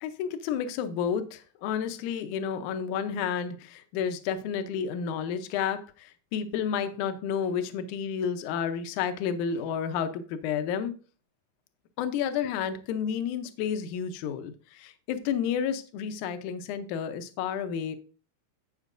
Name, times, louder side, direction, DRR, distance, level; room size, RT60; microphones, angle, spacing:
voice 1, 0.0-11.0 12.0-18.0, left 7 dB, 75° left, 9 dB, 2.1 m, -31 dB
15.5 x 5.6 x 2.6 m, 0.36 s
omnidirectional pair, 3.7 m